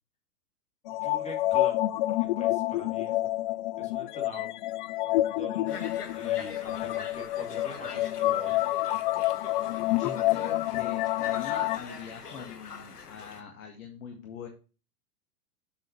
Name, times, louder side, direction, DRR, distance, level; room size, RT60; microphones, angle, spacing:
sound 1, 0.9-11.8, left 16 dB, 35° left, 0.4 m, -28 dB
voice 1, 0.9-1.7 2.2-3.2 3.8-4.6 5.0-8.6, equal, 15° left, 1 dB, 3.0 m, -44 dB
Conversation, 5.7-13.4, left 5 dB, 85° left, 1.3 m, -43 dB
voice 2, 9.7-14.5, left 6 dB, 60° left, 4 dB, 1.8 m, -43 dB
8.0 x 6.6 x 3.3 m, 0.34 s
hypercardioid pair, 105°, 46 cm